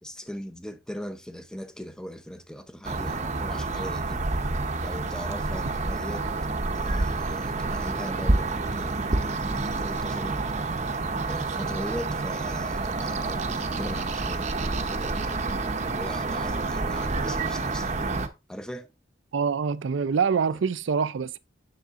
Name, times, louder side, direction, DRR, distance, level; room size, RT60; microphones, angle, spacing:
voice 1, 0.0-4.3 4.8-6.3 6.7-10.4 11.3-15.5 15.9-18.1 18.5-18.9 20.5-20.6, equal, 5° left, 0.6 m, -40 dB
sound 1, 2.8-18.3, right 3 dB, 40° right, 0.8 m, -28 dB
voice 2, 19.3-21.4, right 6 dB, 85° right, 0.4 m, -25 dB
7.4 x 6.7 x 2.5 m
head